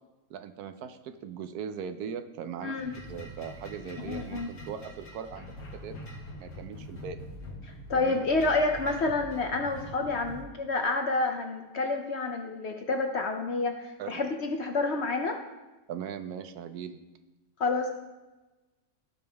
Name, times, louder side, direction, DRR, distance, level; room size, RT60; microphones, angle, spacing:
voice 1, 0.3-5.5 5.7-6.0 6.4-7.2 7.9-8.3 14.0-14.1 15.9-17.0, right 7 dB, 75° right, 9 dB, 1.1 m, -39 dB
voice 2, 2.6-2.9 4.0-4.5 7.9-15.4 17.6-17.9, left 3 dB, 55° left, 4 dB, 0.8 m, -29 dB
sound 1, 2.8-10.4, equal, 85° left, 2.0 m, -44 dB
15.0 x 5.3 x 3.4 m, 1.1 s
omnidirectional pair, 1.7 m